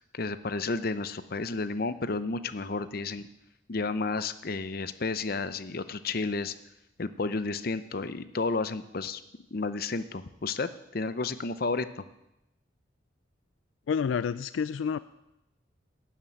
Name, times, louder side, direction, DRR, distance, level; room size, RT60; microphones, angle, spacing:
voice 1, 0.1-3.3 3.7-6.5 7.0-9.2 9.5-12.0, left 3 dB, 50° left, 13 dB, 0.7 m, -32 dB
voice 2, 13.9-15.0, left 6 dB, 80° left, 15 dB, 0.3 m, -29 dB
12.0 x 7.4 x 9.2 m, 0.90 s
head